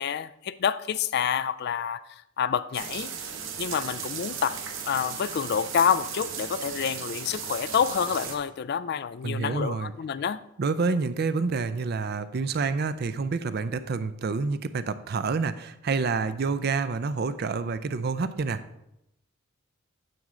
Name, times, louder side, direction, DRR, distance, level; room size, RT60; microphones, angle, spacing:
voice 1, 0.0-3.1 3.6-10.4, left 7 dB, 50° left, 0.3 m, -28 dB
sound 1, 2.7-8.4, right 7 dB, 70° right, 1.3 m, -36 dB
voice 2, 9.2-9.9 10.6-18.6, right 4 dB, 50° right, 0.4 m, -28 dB
9.2 x 7.5 x 3.8 m
head